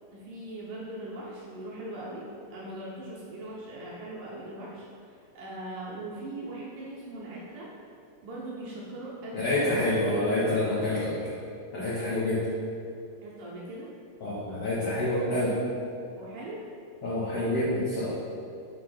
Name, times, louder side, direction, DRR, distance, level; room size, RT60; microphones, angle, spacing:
voice 1, 0.1-7.7 8.2-9.9 13.2-13.9 16.2-16.6, right 1 dB, 70° right, -6 dB, 2.1 m, -40 dB
voice 2, 9.3-11.3 11.7-12.4 14.2-15.5 17.0-18.2, left 1 dB, 90° left, -9 dB, 1.3 m, -27 dB
6.6 x 3.2 x 5.7 m, 2.4 s
omnidirectional pair, 4.4 m